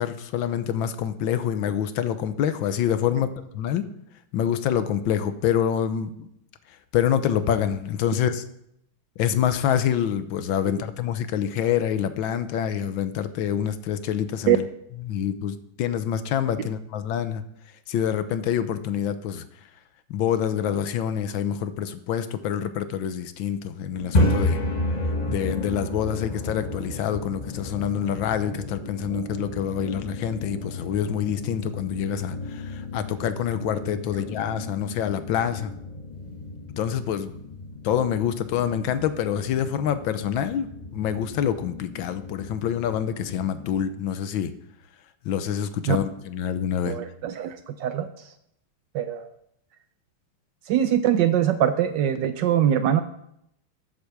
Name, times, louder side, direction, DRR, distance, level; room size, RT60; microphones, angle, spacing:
voice 1, 0.0-3.8 4.3-6.3 6.7-8.4 9.2-14.7 15.0-17.4 17.9-19.5 20.1-24.6 25.3-35.7 36.8-37.3 37.8-44.5 45.2-47.0, left 9 dB, 75° left, 11 dB, 1.4 m, -26 dB
sound 1, 23.9-43.8, left 1 dB, 30° left, 0.9 m, -32 dB
voice 2, 46.9-48.1 48.9-49.3 50.7-53.0, right 10 dB, 70° right, 10 dB, 1.1 m, -22 dB
8.2 x 7.8 x 6.6 m, 0.76 s
omnidirectional pair, 2.3 m